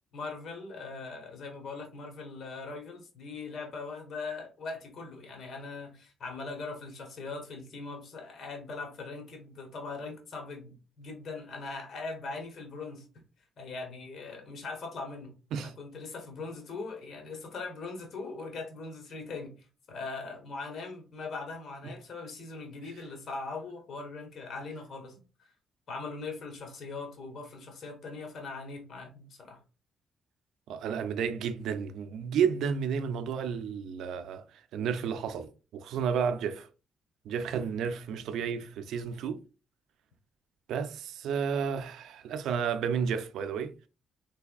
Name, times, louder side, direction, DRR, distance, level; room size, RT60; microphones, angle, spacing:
voice 1, 0.1-13.1 13.6-25.2 25.9-29.6, left 3 dB, 60° left, 1.2 m, -40 dB
voice 2, 30.7-36.7 37.2-39.4 40.7-43.7, right 7 dB, 80° right, 0.4 m, -32 dB
3.4 x 3.3 x 2.3 m
cardioid pair, 90°, 0 cm